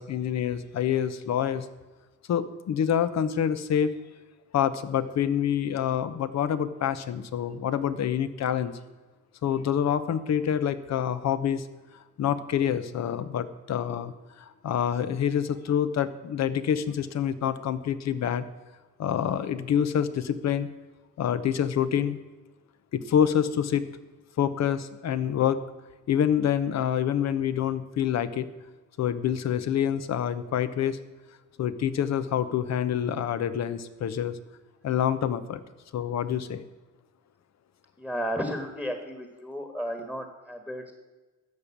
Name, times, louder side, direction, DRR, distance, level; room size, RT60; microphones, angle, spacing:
voice 1, 0.0-1.7 2.3-3.9 4.5-8.7 9.4-11.7 12.2-18.5 19.0-20.7 21.2-22.2 22.9-23.8 24.4-25.6 26.1-28.5 29.0-31.0 31.6-34.4 34.8-35.6 35.9-36.6, left 9 dB, 60° left, 13 dB, 0.9 m, -27 dB
voice 2, 38.0-40.9, equal, 5° left, 6 dB, 1.5 m, -33 dB
13.0 x 5.4 x 8.5 m, 1.2 s
cardioid pair, 90°, 30 cm